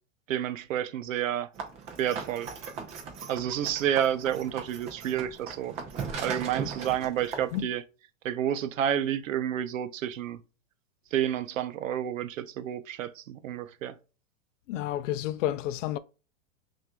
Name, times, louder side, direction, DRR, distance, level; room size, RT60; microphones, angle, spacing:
voice 1, 0.3-1.5 2.0-2.5 3.3-5.7 6.2-7.8 8.2-10.4 11.1-14.0, right 10 dB, 90° right, 0.6 m, -30 dB
sound 1, 1.5-7.6, right 6 dB, 15° right, 0.4 m, -39 dB
voice 2, 14.7-16.0, left 13 dB, 70° left, 0.5 m, -30 dB
5.7 x 2.6 x 2.3 m
hypercardioid pair, 145°, 38 cm